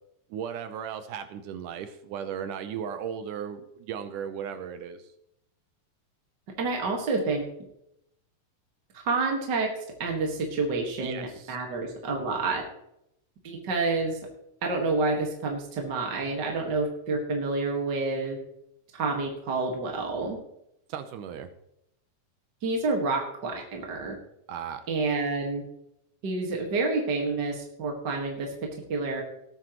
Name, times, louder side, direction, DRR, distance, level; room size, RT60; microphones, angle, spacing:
voice 1, 0.3-5.0 11.0-11.6 20.9-21.5 24.5-24.8, right 8 dB, 75° right, 9 dB, 2.3 m, -36 dB
voice 2, 6.6-7.4 8.9-9.7 10.0-12.6 13.4-14.2 14.6-18.4 19.0-20.4 22.6-24.2 24.9-25.6 26.2-28.5 28.9-29.2, right 3 dB, 40° right, 1 dB, 1.8 m, -28 dB
18.5 x 9.2 x 3.1 m, 0.80 s
omnidirectional pair, 3.9 m